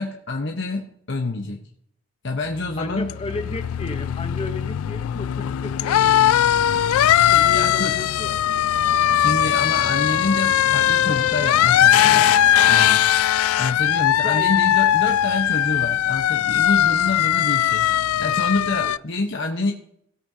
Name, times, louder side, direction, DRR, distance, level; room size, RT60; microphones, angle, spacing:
voice 1, 0.0-1.6 2.2-3.1 7.5-8.0 9.1-12.4 12.7-13.0 13.6-17.9 18.2-19.7, left 3 dB, 55° left, 1 dB, 1.0 m, -27 dB
sound 1, 2.5-19.0, left 11 dB, 90° left, 0.3 m, -19 dB
voice 2, 2.8-6.2 7.3-8.4 14.2-14.5 18.8-18.9, left 2 dB, 25° left, 8 dB, 0.9 m, -33 dB
sound 2, 6.2-12.8, right 1 dB, 10° right, 1.1 m, -42 dB
17.0 x 8.6 x 2.8 m, 0.67 s
head